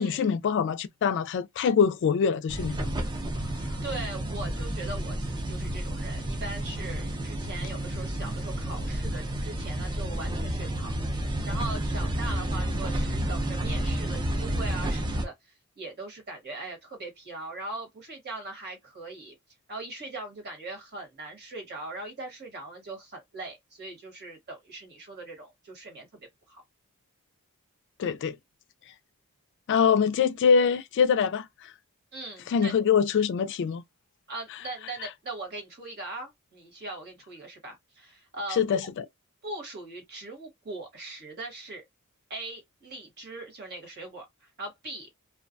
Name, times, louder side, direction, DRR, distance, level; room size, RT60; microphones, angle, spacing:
voice 1, 0.0-2.9 28.0-28.4 29.7-31.7 32.5-33.8 38.5-39.0, left 6 dB, 55° left, 0.3 m, -24 dB
sound 1, 2.5-15.2, right 1 dB, 20° right, 0.4 m, -31 dB
voice 2, 3.8-10.9 11.5-19.3 19.7-26.6 32.1-32.8 34.3-38.9 39.4-41.8 42.3-45.1, right 2 dB, 50° right, 1.2 m, -40 dB
2.3 x 2.2 x 2.5 m
head